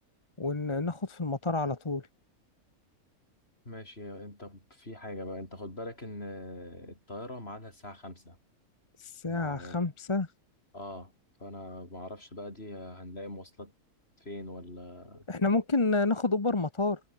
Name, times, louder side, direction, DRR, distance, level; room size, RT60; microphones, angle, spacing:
voice 1, 0.4-2.1 9.0-10.3 15.3-17.0, left 3 dB, 20° left, 1.0 m, -29 dB
voice 2, 3.7-8.4 9.3-9.9 10.7-11.1 11.4-13.7 14.2-15.2, left 1 dB, 40° left, 7.7 m, -42 dB
omnidirectional pair, 1.6 m